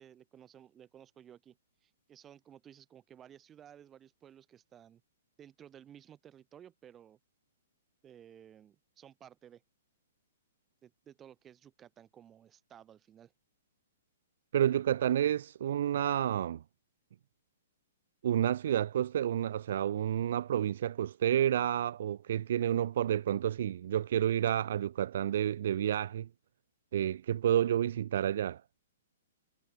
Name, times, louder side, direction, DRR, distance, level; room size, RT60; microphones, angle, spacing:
voice 1, 0.0-1.6 1.8-5.0 5.4-7.2 8.0-9.6 10.8-13.3, right 9 dB, 15° right, 2.8 m, -56 dB
voice 2, 14.5-16.6 18.2-26.3 26.9-28.6, right 10 dB, 60° right, 0.5 m, -30 dB
hypercardioid pair, 150°, 0 cm